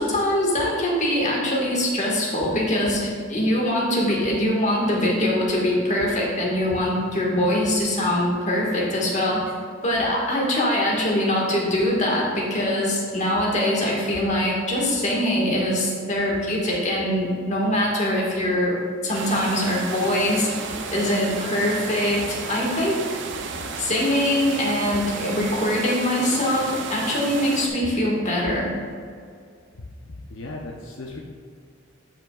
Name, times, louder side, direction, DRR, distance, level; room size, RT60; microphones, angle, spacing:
voice 1, 0.0-9.4 9.8-18.8 19.0-20.6 20.9-23.0 23.8-28.7, left 1 dB, 35° left, -3 dB, 1.6 m, -23 dB
sound 1, 19.1-27.7, right 4 dB, 60° right, 0.6 m, -33 dB
voice 2, 30.0-31.2, left 2 dB, 75° left, -1 dB, 0.7 m, -37 dB
10.5 x 5.7 x 2.4 m, 2.2 s
head